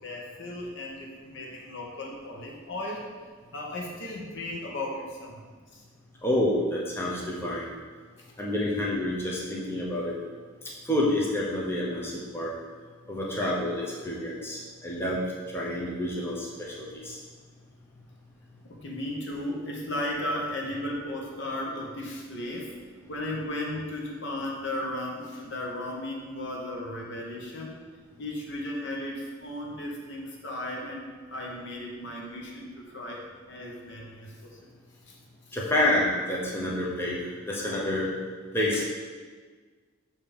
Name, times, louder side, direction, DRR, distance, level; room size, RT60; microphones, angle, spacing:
voice 1, 0.0-3.0 3.5-5.4 5.7-5.8 8.2-8.3 18.7-22.7 23.1-27.8 28.2-34.6 35.1-35.2 35.5-35.6 37.7-37.8 38.7-38.8, left 1 dB, 60° left, -1 dB, 1.1 m, -35 dB
voice 2, 6.2-7.7 8.4-10.1 10.9-12.5 13.1-15.2 15.5-17.2 35.5-37.2 37.5-38.1 38.5-38.9, left 1 dB, 10° left, -5 dB, 0.8 m, -28 dB
6.8 x 2.9 x 5.3 m, 1.5 s
head